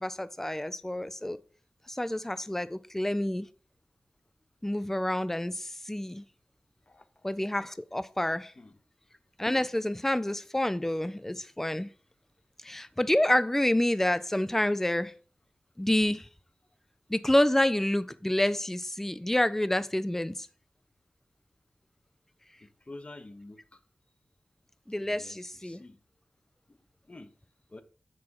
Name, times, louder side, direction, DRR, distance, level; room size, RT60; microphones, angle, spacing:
voice 1, 0.0-1.4 1.9-3.5 4.6-6.2 7.2-8.5 9.4-11.9 12.6-15.1 15.8-16.3 17.1-20.5 24.9-25.8, left 1 dB, 10° left, 0.5 m, -28 dB
voice 2, 22.6-23.6 25.0-26.0 26.7-26.8 27.1-27.3 27.7-27.8, left 2 dB, 40° left, 1.1 m, -48 dB
7.3 x 6.1 x 4.7 m
cardioid pair, 45°, 3 cm